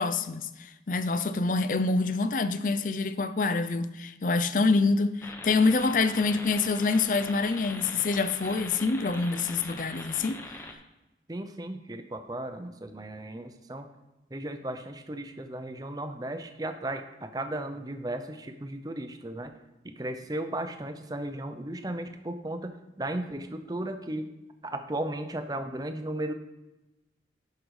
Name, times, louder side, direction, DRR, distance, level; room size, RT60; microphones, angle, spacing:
voice 1, 0.0-10.4, left 3 dB, 45° left, 0.5 m, -26 dB
sound 1, 5.2-10.7, left 2 dB, 15° left, 0.8 m, -42 dB
voice 2, 11.3-13.9 14.3-19.5 19.8-24.3 24.6-26.3, right 1 dB, 20° right, 0.7 m, -35 dB
11.5 x 5.2 x 4.8 m
head